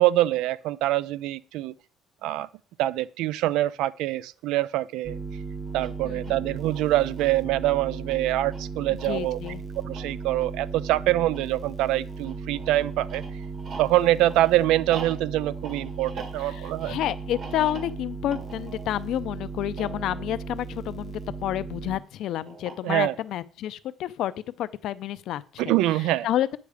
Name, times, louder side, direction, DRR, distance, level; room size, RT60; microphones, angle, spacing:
voice 1, 0.0-1.7 2.2-2.5 2.8-5.2 5.7-9.4 9.9-13.2 13.8-17.0 22.8-23.1 25.6-26.3, right 15 dB, 85° right, 0.4 m, -24 dB
sound 1, 5.0-22.0, right 4 dB, 30° right, 1.0 m, -36 dB
sound 2, 5.7-21.4 22.5-23.3, right 3 dB, 45° right, 1.7 m, -45 dB
voice 2, 6.0-6.4 8.9-9.6 16.4-24.3 24.6-26.6, left 12 dB, 65° left, 0.5 m, -30 dB
9.6 x 6.8 x 4.9 m
cardioid pair, 145°, 0 cm